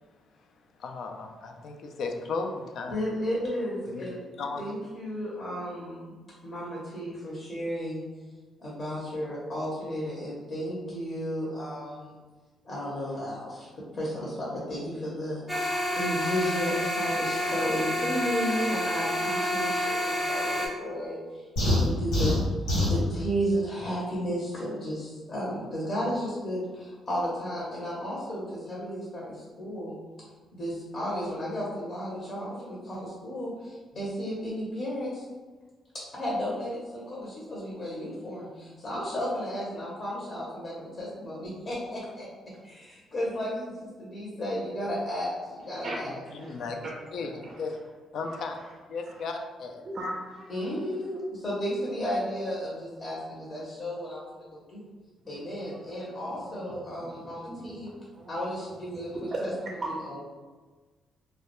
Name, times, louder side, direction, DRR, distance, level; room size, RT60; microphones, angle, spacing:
voice 1, 0.8-3.0 3.8-4.1 4.4-4.8 46.1-46.8 47.1-47.8 48.1-48.6 48.9-49.8, left 4 dB, 70° left, 3 dB, 0.3 m, -35 dB
voice 2, 2.9-4.2 4.6-6.1 6.4-8.0 8.6-12.2 12.6-22.4 22.9-30.0 30.5-35.2 36.1-42.3 42.6-46.5 47.3-47.4 50.5-54.8 55.3-57.9 58.3-59.1 59.4-59.5 60.0-60.2, equal, 40° left, -5 dB, 0.7 m, -33 dB
sound 1, 15.5-20.7, equal, 5° left, 0.6 m, -29 dB
sound 2, 21.6-23.0, left 1 dB, 85° left, 1.2 m, -24 dB
voice 3, 46.4-46.9 47.4-47.6 48.2-48.7 49.8-50.7 55.3-55.4 55.7-57.8 58.1-58.3 58.7-59.9, right 1 dB, 40° right, -3 dB, 0.4 m, -39 dB
2.2 x 2.1 x 2.9 m, 1.3 s
cardioid pair, 90°, 0 cm